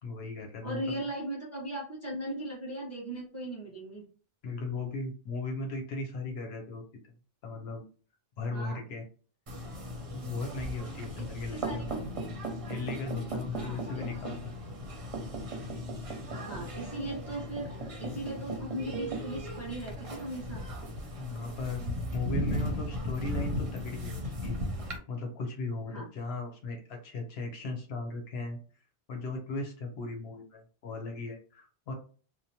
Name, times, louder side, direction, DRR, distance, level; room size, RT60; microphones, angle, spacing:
voice 1, 0.0-1.0 4.4-6.8 7.4-7.9 8.4-9.0 10.1-12.0 12.7-14.5 21.2-24.6 25.1-28.6 29.1-31.9, left 3 dB, 90° left, 2 dB, 1.0 m, -37 dB
voice 2, 0.6-4.0 8.5-8.8 11.2-11.3 11.5-11.9 13.5-14.0 16.5-17.7 18.0-20.6 25.9-26.1, right 1 dB, 15° left, -4 dB, 1.1 m, -38 dB
sound 1, 9.5-25.0, equal, 40° right, 0.6 m, -37 dB
2.9 x 2.1 x 2.7 m, 0.39 s
omnidirectional pair, 1.0 m